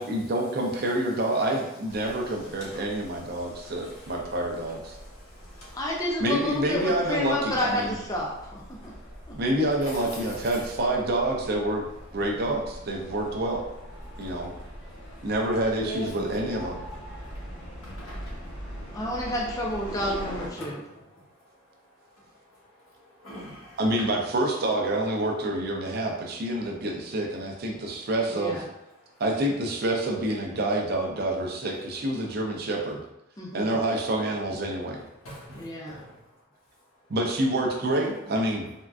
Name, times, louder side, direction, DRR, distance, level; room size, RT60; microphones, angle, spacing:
voice 1, 0.0-5.0 6.2-7.9 9.3-11.9 12.1-13.6 14.2-14.5 15.2-16.8 23.8-28.6 29.2-33.0 33.5-35.0 37.1-38.7, right 1 dB, 50° right, 1 dB, 0.5 m, -27 dB
sound 1, 1.9-20.5, equal, 55° left, 0.9 m, -43 dB
voice 2, 2.0-4.3 4.9-5.9 8.7-9.4 9.8-10.6 14.0-15.3 15.8-16.4 16.9-19.0 20.6-24.1 26.6-26.8 29.0-29.2 35.2-36.3, equal, 85° left, -5 dB, 1.1 m, -46 dB
voice 3, 5.7-8.6 9.3-9.4 18.9-20.8 28.3-28.6 33.4-33.8 35.5-36.0, left 1 dB, 15° left, -3 dB, 0.4 m, -30 dB
3.6 x 2.3 x 2.3 m, 0.91 s
head